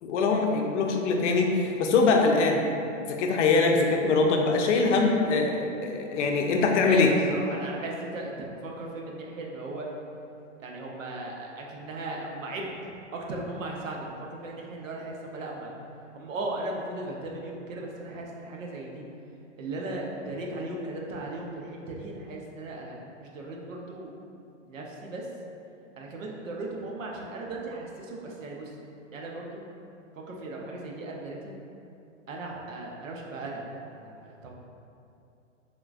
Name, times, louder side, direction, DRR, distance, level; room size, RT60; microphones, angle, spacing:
voice 1, 0.0-2.6 3.1-7.1, left 4 dB, 65° left, 2 dB, 0.5 m, -23 dB
voice 2, 6.8-8.3 8.6-9.9 10.6-15.7 16.1-19.0 19.6-24.1 24.7-25.3 26.0-28.7 29.1-29.6 30.1-31.5 32.3-34.5, right 2 dB, 90° right, -1 dB, 0.7 m, -37 dB
3.6 x 2.4 x 2.4 m, 2.6 s
hypercardioid pair, 135°, 38 cm